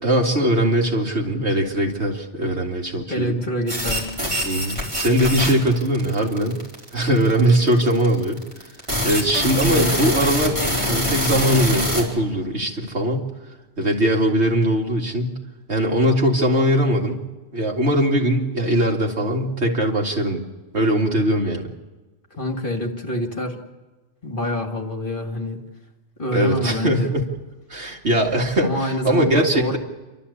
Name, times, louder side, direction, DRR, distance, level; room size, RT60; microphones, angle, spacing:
voice 1, 0.0-3.4 4.4-6.6 6.9-8.4 9.0-13.3 13.8-15.4 15.7-17.2 17.5-20.4 20.7-21.7 26.3-27.2 27.7-29.8, right 1 dB, 60° right, 0 dB, 2.7 m, -21 dB
voice 2, 3.1-4.1 9.6-10.0 22.4-23.6 24.2-25.6 26.2-27.1 28.6-29.8, equal, 45° left, 3 dB, 2.4 m, -26 dB
sound 1, 3.7-12.0, equal, 25° right, 4.5 m, -24 dB
28.5 x 12.5 x 8.5 m, 1.2 s
omnidirectional pair, 1.3 m